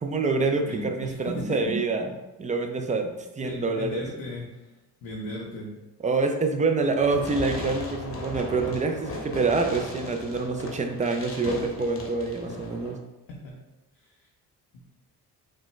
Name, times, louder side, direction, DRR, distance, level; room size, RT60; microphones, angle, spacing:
voice 1, 0.0-2.1 2.4-4.0 6.0-13.0, right 3 dB, 20° right, 4 dB, 0.4 m, -26 dB
voice 2, 0.6-1.8 3.4-4.7 5.0-5.8 12.5-12.6 13.3-13.6 14.0-14.1 14.7-14.8, left 1 dB, 70° left, -3 dB, 0.7 m, -36 dB
Fireworks, 6.9-12.9, left 2 dB, 30° left, 0.8 m, -37 dB
3.1 x 2.1 x 3.1 m, 1.0 s
hypercardioid pair, 45°, 45 cm